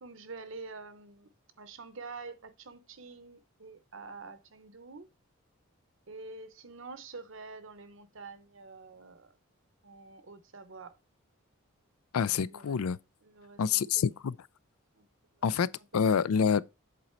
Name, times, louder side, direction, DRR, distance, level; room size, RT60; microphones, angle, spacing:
voice 1, 0.0-1.3 1.6-5.1 6.1-9.3 9.8-11.0 12.5-12.7 13.2-14.0 14.9-15.1 15.4-15.5 16.4-16.5, right 4 dB, 65° right, 0.8 m, -47 dB
voice 2, 12.1-13.0 13.6-14.3 15.4-15.7 15.9-16.6, left 6 dB, 85° left, 0.4 m, -27 dB
7.7 x 4.1 x 4.4 m
head